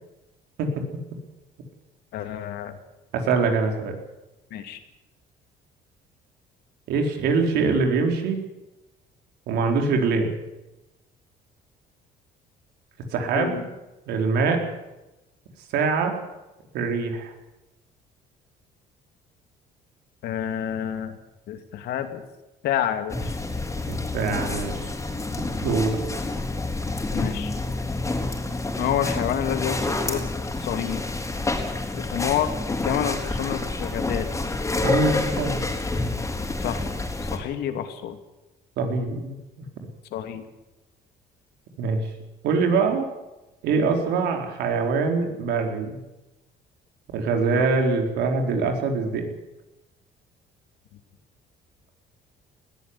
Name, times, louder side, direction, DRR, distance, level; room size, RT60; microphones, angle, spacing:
voice 1, 2.1-2.8 4.5-4.8 13.3-13.6 20.2-21.2 21.5-22.2 22.6-23.3 27.1-27.5 28.8-30.2 30.6-31.0 31.9-32.5 32.8-34.3 36.6-36.8 37.2-38.2 40.1-40.4 47.5-47.7, left 10 dB, 75° left, 8 dB, 2.6 m, -28 dB
voice 2, 3.1-4.0 6.9-8.4 9.5-10.3 13.1-13.6 14.1-14.6 15.7-16.1 16.7-17.3 23.9-24.9 25.6-26.0 34.8-35.7 38.8-39.4 41.8-42.0 42.4-43.1 43.6-46.0 47.1-49.3, right 4 dB, 80° right, 4 dB, 4.4 m, -23 dB
sound 1, 23.1-37.4, left 2 dB, 15° left, 4.5 m, -28 dB
20.0 x 14.5 x 9.9 m, 1.0 s
cardioid pair, 110°, 17 cm